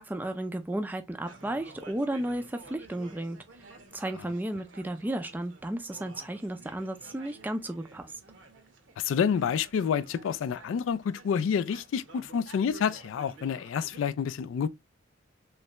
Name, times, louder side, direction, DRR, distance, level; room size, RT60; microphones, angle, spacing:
voice 1, 0.0-3.4 3.9-8.1, right 1 dB, 10° right, 0.3 m, -33 dB
sound 1, 1.2-14.0, right 3 dB, 75° right, 0.9 m, -52 dB
voice 2, 9.0-14.7, left 7 dB, 85° left, 0.3 m, -28 dB
3.2 x 3.2 x 2.8 m
head